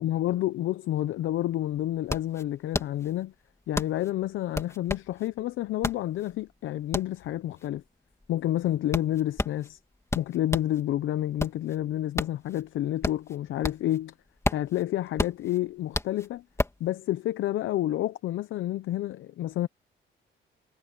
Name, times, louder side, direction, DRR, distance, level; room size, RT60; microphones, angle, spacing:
voice 1, 0.0-3.3 3.7-7.8 8.3-9.8 10.1-14.1 14.5-16.4 16.8-19.7, left 13 dB, 75° left, 0.8 m, -29 dB
sound 1, 1.1-1.2 1.5-10.8 11.2-14.0 14.3-16.9, left 2 dB, 15° left, 2.8 m, -32 dB
cardioid pair, 90°, 20 cm